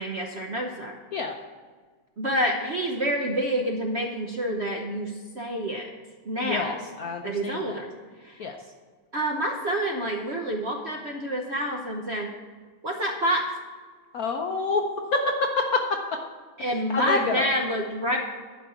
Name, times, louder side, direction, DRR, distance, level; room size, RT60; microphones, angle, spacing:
voice 1, 0.0-0.9 2.2-5.9 6.3-6.8 7.2-7.9 8.2-8.4 9.1-12.3 12.8-13.4 16.6-18.2, equal, 50° right, 1 dB, 0.8 m, -28 dB
voice 2, 6.4-7.8 8.4-8.6 14.1-14.8 15.1-15.2 15.7-15.8 16.6-17.5, left 4 dB, 65° left, 4 dB, 0.9 m, -28 dB
11.5 x 5.2 x 8.1 m, 1.5 s
omnidirectional pair, 2.3 m